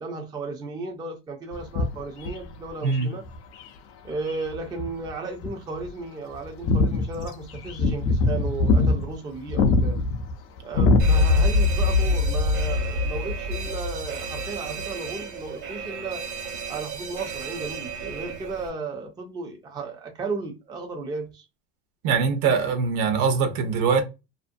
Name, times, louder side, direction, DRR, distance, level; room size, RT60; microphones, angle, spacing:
voice 1, 0.0-3.2 4.0-10.0 10.6-16.2 16.7-21.5, right 3 dB, 15° right, 0.4 m, -34 dB
sound 1, 1.5-3.7 4.3-5.1 5.4-5.5 5.8-5.9 6.3-11.6 11.9-12.1 13.6-13.7, left 3 dB, 40° left, 0.4 m, -23 dB
Alarm, 11.0-18.7, left 2 dB, 90° right, 1.0 m, -26 dB
voice 2, 22.0-24.0, right 5 dB, 55° right, 0.8 m, -22 dB
2.6 x 2.1 x 2.5 m
supercardioid pair, 130°, 33 cm